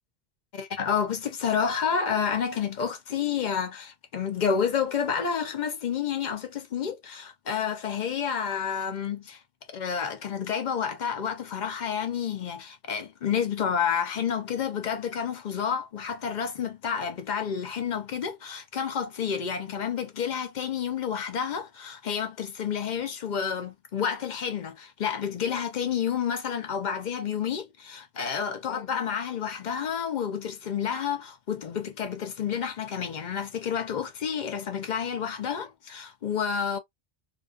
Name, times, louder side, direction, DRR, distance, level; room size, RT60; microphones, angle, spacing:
voice 1, 0.5-9.4 9.7-36.8, left 7 dB, 55° left, 0.6 m, -30 dB
2.4 x 2.2 x 2.4 m
omnidirectional pair, 1.1 m